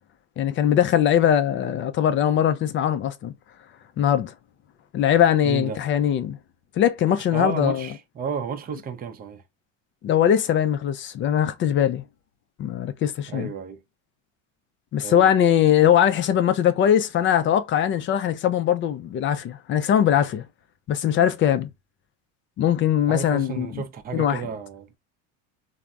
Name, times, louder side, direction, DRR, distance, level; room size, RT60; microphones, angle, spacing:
voice 1, 0.4-3.3 4.0-4.3 4.9-6.4 6.8-7.9 10.0-12.0 12.6-13.5 14.9-20.4 20.9-21.7 22.6-23.7 24.1-24.4, left 10 dB, 35° left, 0.4 m, -21 dB
voice 2, 5.4-5.8 7.1-9.4 13.3-13.8 15.0-15.3 23.1-25.0, right 6 dB, 25° right, 0.5 m, -32 dB
3.2 x 2.1 x 2.3 m
supercardioid pair, 110°, 35 cm